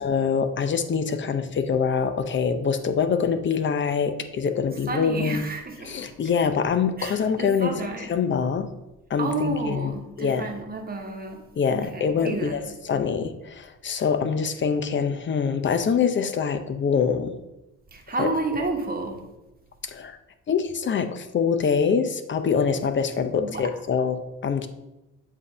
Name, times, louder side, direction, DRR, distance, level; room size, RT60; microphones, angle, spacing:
voice 1, 0.0-5.5 5.8-8.7 9.1-9.9 10.2-10.5 11.6-17.3 18.2-18.3 19.8-20.2 20.5-24.7, left 6 dB, 40° left, 9 dB, 0.6 m, -25 dB
voice 2, 4.9-6.1 7.0-8.1 9.2-11.4 11.7-12.7 17.9-19.2 23.4-23.6, right 3 dB, 30° right, 3 dB, 1.2 m, -31 dB
7.4 x 2.7 x 4.9 m, 0.97 s
cardioid pair, 90°, 30 cm